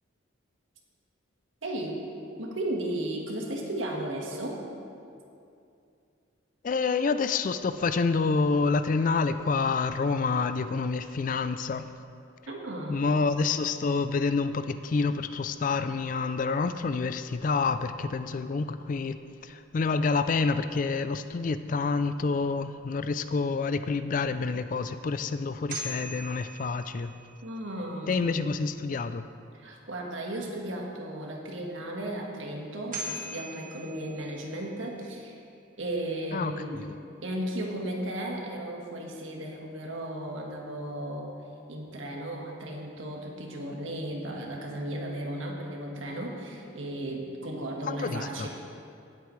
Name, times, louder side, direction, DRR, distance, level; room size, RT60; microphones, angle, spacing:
voice 1, 1.6-2.1 2.4-4.7 12.5-13.1 27.4-28.2 29.5-35.4 35.8-36.8 37.2-41.3 41.7-48.5, right 1 dB, 85° right, 0 dB, 1.6 m, -35 dB
voice 2, 6.6-11.9 12.9-27.1 28.1-29.2 36.3-37.0 47.8-48.5, left 4 dB, 40° left, 11 dB, 0.3 m, -28 dB
sound 1, 25.5-27.6 32.5-32.6 32.9-34.8, equal, 45° right, 1.5 m, -40 dB
17.5 x 8.2 x 3.2 m, 2.5 s
head